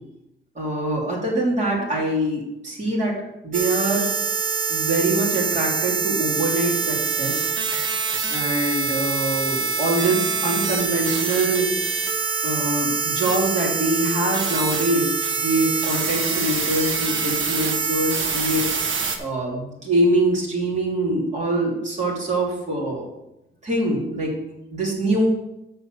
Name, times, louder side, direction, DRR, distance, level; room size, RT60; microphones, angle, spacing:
voice 1, 0.5-3.1 3.4-4.1 4.7-7.9 8.3-11.7 12.4-15.1 15.4-18.7 19.2-23.1 23.6-24.4 24.7-25.3, right 1 dB, 35° right, -4 dB, 3.0 m, -24 dB
sound 1, 3.5-19.2, right 5 dB, 75° right, 1.2 m, -25 dB
7.0 x 6.5 x 6.5 m, 0.89 s
wide cardioid pair, 170°, 21 cm